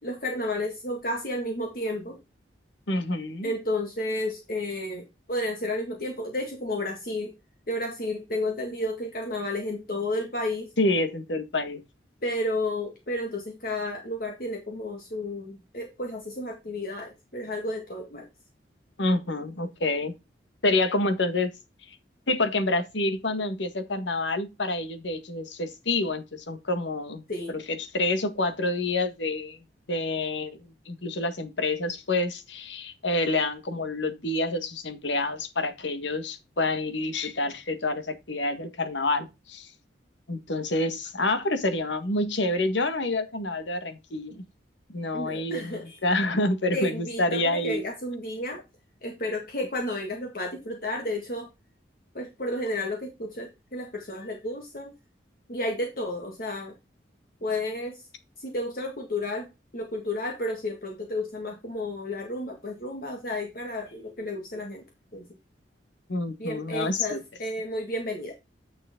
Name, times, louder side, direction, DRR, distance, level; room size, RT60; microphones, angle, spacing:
voice 1, 0.0-2.2 3.4-7.4 7.7-10.7 12.2-18.3 27.3-27.5 45.1-46.0 46.7-48.6 49.0-51.5 52.1-54.9 55.5-56.7 57.4-58.0 58.4-64.8 65.1-65.2 66.4-68.3, left 1 dB, 50° left, 1.8 m, -32 dB
voice 2, 2.9-3.5 10.8-11.8 19.0-20.1 20.6-21.5 22.3-29.6 29.9-30.6 30.8-39.7 40.3-44.4 44.9-47.8 66.1-67.2, left 2 dB, 85° left, 1.6 m, -28 dB
9.4 x 6.4 x 3.7 m
head